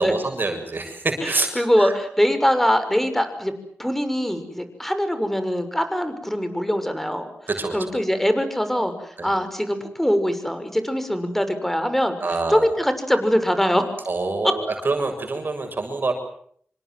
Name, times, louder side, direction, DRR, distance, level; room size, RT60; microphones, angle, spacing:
voice 1, 0.0-1.9 7.5-7.8 9.2-9.3 12.2-12.7 14.1-16.1, right 3 dB, 50° right, 5 dB, 7.2 m, -26 dB
voice 2, 1.2-3.5 3.8-7.3 7.7-12.2 12.5-13.8 14.4-14.5, equal, 5° left, 9 dB, 6.1 m, -22 dB
27.5 x 25.5 x 7.8 m, 0.64 s
cardioid pair, 60°, 4 cm